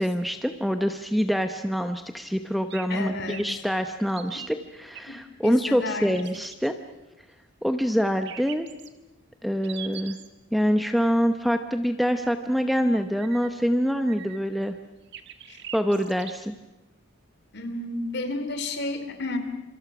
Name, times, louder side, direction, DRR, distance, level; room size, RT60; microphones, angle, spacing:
voice 1, 0.0-6.8 7.6-8.7 9.4-10.2 10.5-14.7 15.7-16.5, equal, ahead, 7 dB, 0.8 m, -25 dB
sound 1, 2.7-3.0 3.3-3.5 4.1-5.0 6.0-6.7 8.3-8.9 9.6-10.3 13.1-13.5 14.0-14.6 15.1-16.3, right 10 dB, 55° right, 1.6 m, -41 dB
voice 2, 2.9-3.5 5.1-5.2 5.4-6.2 15.5-15.6 17.5-19.4, left 2 dB, 50° left, 7 dB, 2.9 m, -31 dB
27.0 x 26.5 x 6.1 m, 1.0 s
head